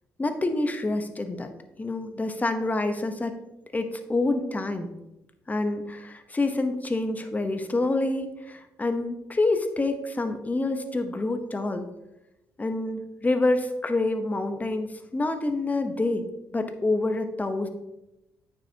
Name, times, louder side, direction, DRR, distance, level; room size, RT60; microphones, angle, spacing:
voice 1, 0.2-1.5 1.8-3.3 3.7-4.9 5.5-11.8 12.6-14.9 15.1-16.2 16.5-17.7, left 2 dB, 25° left, 7 dB, 1.0 m, -27 dB
9.1 x 6.3 x 2.9 m, 0.92 s
supercardioid pair, 60°, 7 cm